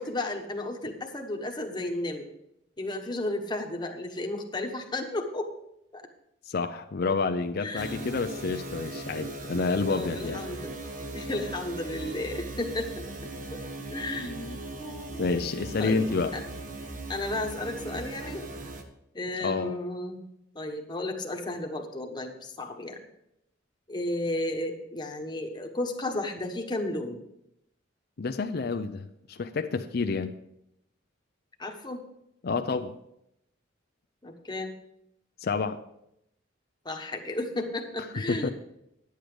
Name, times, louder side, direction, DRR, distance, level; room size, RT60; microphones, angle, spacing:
voice 1, 0.0-2.3 2.8-5.5 5.9-6.0 7.6-8.1 9.9-10.7 11.1-13.0 13.9-15.3 15.8-16.1 16.3-16.4 17.1-18.4 19.1-20.2 20.5-23.0 23.9-27.2 31.6-32.0 34.2-34.7 36.8-38.5, left 2 dB, 25° left, 3 dB, 1.2 m, -33 dB
voice 2, 6.5-10.4 15.2-16.3 19.4-19.8 28.2-30.3 32.4-32.9 35.4-35.8 38.3-38.5, left 4 dB, 55° left, 7 dB, 0.5 m, -29 dB
sound 1, 7.8-18.8, right 2 dB, 45° right, 1.1 m, -39 dB
10.5 x 8.0 x 5.0 m, 0.79 s
head